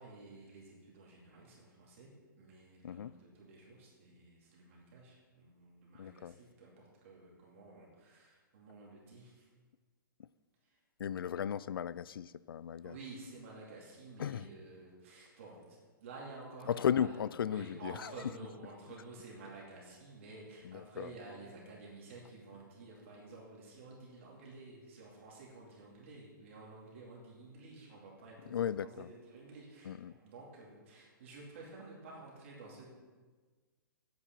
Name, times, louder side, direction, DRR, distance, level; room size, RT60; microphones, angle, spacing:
voice 1, 0.0-9.5 10.6-10.8 12.8-32.9, right 3 dB, 35° right, -4 dB, 2.6 m, -52 dB
voice 2, 6.0-6.3 11.0-12.9 14.2-14.5 16.7-17.9 20.7-21.1 28.5-29.1 29.9-30.1, left 9 dB, 80° left, 18 dB, 0.4 m, -35 dB
12.0 x 8.4 x 4.5 m, 1.4 s
hypercardioid pair, 180°, 12 cm